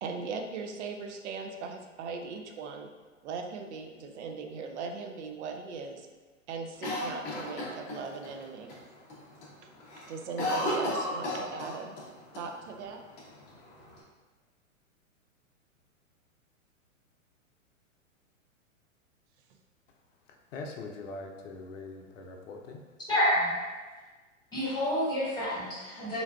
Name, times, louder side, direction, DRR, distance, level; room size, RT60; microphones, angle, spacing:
voice 1, 0.0-2.9 3.2-6.1 6.5-8.8 10.1-12.0 12.3-13.0, right 5 dB, 60° right, 4 dB, 0.5 m, -39 dB
Cough, 6.8-8.3 8.7-8.8 9.1-9.5 9.8-12.1 12.3-12.4 13.2-14.0, left 1 dB, 25° left, 0.6 m, -33 dB
voice 2, 20.3-22.8, left 3 dB, 70° left, 2 dB, 0.6 m, -42 dB
voice 3, 23.1-23.6 24.5-26.2, equal, 10° left, -9 dB, 1.3 m, -28 dB
3.9 x 2.3 x 2.2 m, 1.3 s
hypercardioid pair, 115°, 39 cm